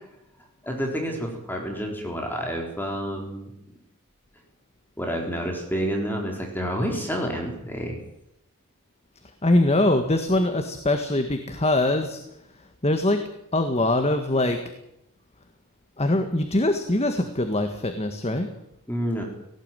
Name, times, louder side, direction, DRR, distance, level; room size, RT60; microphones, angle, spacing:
voice 1, 0.6-3.5 5.0-8.0 18.9-19.2, equal, 10° left, 1 dB, 3.9 m, -29 dB
voice 2, 9.4-12.2 12.8-13.2 13.5-14.6 16.0-18.5, left 1 dB, 30° left, 6 dB, 1.7 m, -22 dB
18.0 x 18.0 x 9.1 m, 0.81 s
head